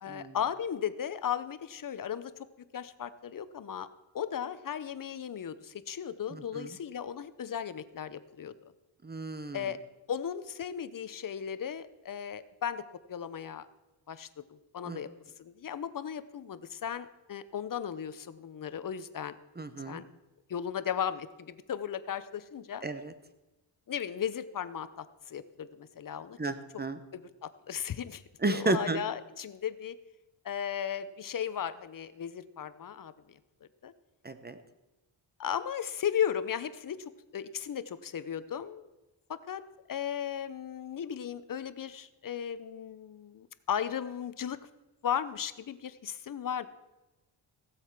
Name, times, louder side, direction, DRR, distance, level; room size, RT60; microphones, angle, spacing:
voice 1, 0.0-2.5 2.7-3.9 4.1-8.5 9.5-9.8 10.1-12.8 13.1-13.7 14.1-15.1 15.4-19.4 19.9-20.0 20.5-22.8 23.9-26.4 27.1-28.2 28.5-30.0 30.4-33.4 33.8-33.9 35.4-38.9 39.3-39.6 39.9-44.6 45.0-46.7, left 8 dB, 45° left, 13 dB, 0.7 m, -36 dB
voice 2, 6.3-6.7 9.0-9.7 14.8-15.0 19.6-20.0 22.8-23.1 26.4-27.0 28.4-29.0 34.2-34.6, right 2 dB, 20° right, 11 dB, 0.8 m, -33 dB
15.5 x 7.8 x 5.9 m, 1.0 s
wide cardioid pair, 125°, 47 cm